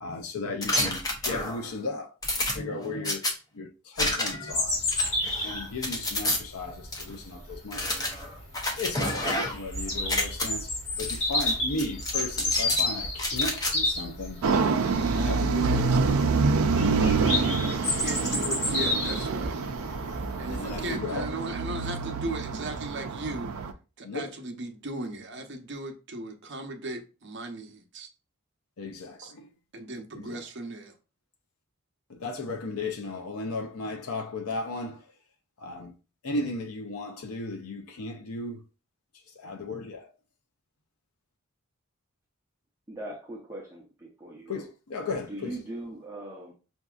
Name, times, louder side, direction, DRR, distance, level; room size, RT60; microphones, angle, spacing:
voice 1, 0.0-3.3 3.5-4.8 5.4-8.1 8.8-14.5 15.1-16.0 16.8-18.0 20.5-21.4 24.0-24.3 28.8-29.5 30.1-30.5 32.1-35.1 35.6-35.7 36.3-38.6 39.4-40.1 44.5-45.5, left 3 dB, 90° left, 0.6 m, -36 dB
sound 1, 0.6-1.7 2.2-3.3 4.0-4.5 4.9-6.4 6.9-7.0 7.7-9.7 10.0-10.5 11.0-11.5 11.8-12.8 13.2-13.7, left 1 dB, 15° left, 0.7 m, -29 dB
Bird vocalization bird call bird song, 4.5-20.9, left 2 dB, 60° left, 1.9 m, -31 dB
sound 2, 14.4-23.7, right 4 dB, 85° right, 0.5 m, -27 dB
voice 2, 18.0-19.6 20.4-23.5 24.0-28.1 29.2-29.3 29.7-30.9, right 2 dB, 55° right, 0.7 m, -37 dB
voice 3, 42.9-44.7 45.3-46.5, right 1 dB, 15° right, 0.7 m, -40 dB
5.8 x 2.6 x 2.4 m
head